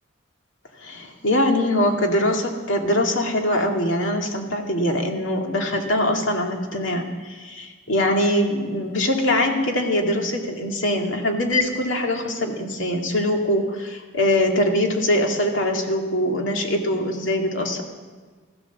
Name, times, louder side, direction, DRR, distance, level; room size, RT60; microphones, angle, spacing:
voice 1, 0.8-17.8, left 1 dB, 90° left, 2 dB, 2.3 m, -22 dB
15.0 x 13.0 x 7.2 m, 1.4 s
head